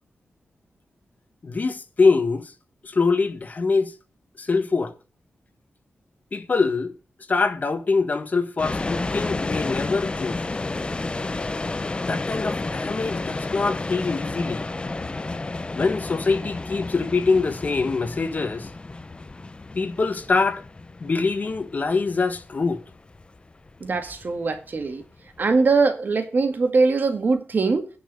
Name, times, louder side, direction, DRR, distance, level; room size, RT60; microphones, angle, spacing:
voice 1, 1.4-2.5 2.8-3.9 4.4-4.9 6.3-6.9 7.3-10.4 12.0-14.7 15.7-18.7 19.7-20.6 21.0-22.8, left 4 dB, 40° left, 1.4 m, -24 dB
sound 1, 8.6-25.6, left 3 dB, 25° left, 0.7 m, -31 dB
voice 2, 23.8-25.0 25.4-27.9, right 4 dB, 50° right, 2.0 m, -22 dB
10.0 x 5.3 x 8.1 m
wide cardioid pair, 110°, 4 cm